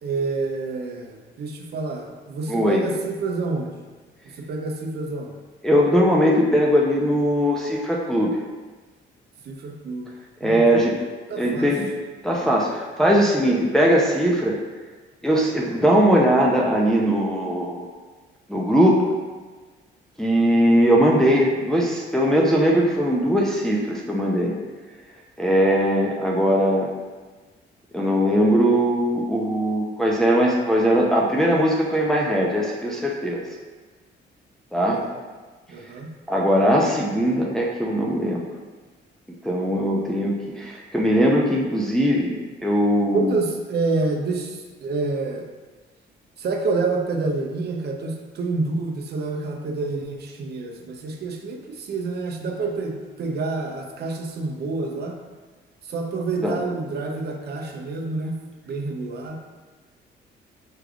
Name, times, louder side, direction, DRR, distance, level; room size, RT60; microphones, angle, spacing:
voice 1, 0.0-3.8 4.4-5.4 9.4-10.1 10.4-10.9 11.3-11.7 34.9-35.1 35.7-36.1 43.1-45.4 46.4-55.2 55.8-58.4 58.7-59.4, right 3 dB, 55° right, 2 dB, 0.7 m, -28 dB
voice 2, 2.5-2.8 5.6-8.3 10.4-11.0 11.4-11.9 12.2-14.5 15.2-17.9 18.5-19.1 20.2-24.5 25.4-26.9 27.9-33.4 34.7-35.0 36.3-38.5 39.4-42.4 42.6-43.4 56.4-56.6, equal, ahead, -3 dB, 0.6 m, -20 dB
6.2 x 3.3 x 2.4 m, 1.3 s
cardioid pair, 90°, 20 cm